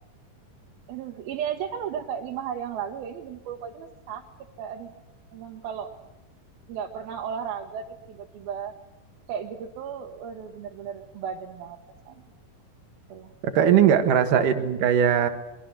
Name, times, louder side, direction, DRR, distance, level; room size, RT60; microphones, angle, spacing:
voice 1, 0.9-4.2 4.6-4.9 5.3-5.9 6.7-8.7 9.3-11.8 12.1-12.2 13.1-13.3 14.3-14.5, right 8 dB, 85° right, 1 dB, 3.1 m, -34 dB
voice 2, 13.4-15.3, right 9 dB, 65° right, 8 dB, 3.0 m, -20 dB
23.0 x 22.5 x 7.6 m, 1.0 s
omnidirectional pair, 4.2 m